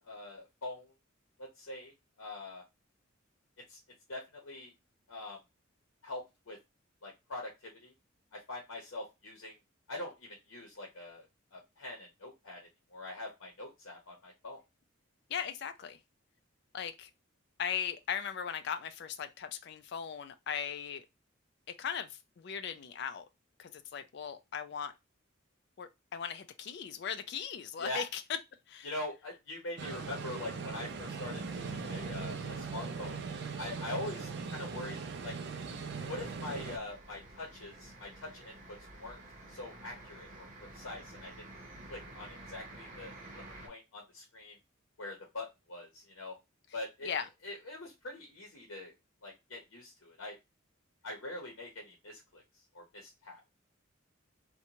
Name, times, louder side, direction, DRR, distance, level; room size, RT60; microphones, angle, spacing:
voice 1, 0.0-0.9 1.4-2.6 3.7-3.8 4.1-4.7 5.1-5.4 6.0-6.6 7.0-7.9 8.3-9.5 9.9-12.6 12.9-14.6 27.8-28.0 28.8-33.2 33.6-35.0 35.2-35.4 36.1-39.2 39.5-41.5 41.9-43.1 43.6-44.6 45.0-46.4 46.7-47.1 47.4-48.9 49.2-50.4 51.0-52.4 52.7-53.4, left 2 dB, 80° left, 0.8 m, -43 dB
voice 2, 15.3-16.0 16.7-17.1 17.6-21.1 21.8-23.3 23.6-24.9 25.8-28.2 28.7-28.9 47.0-47.3, left 7 dB, 55° left, 0.3 m, -38 dB
sound 1, 29.8-36.8, right 5 dB, 55° right, 0.4 m, -40 dB
sound 2, 35.9-43.7, right 1 dB, 40° right, 0.8 m, -51 dB
2.6 x 2.2 x 2.9 m
head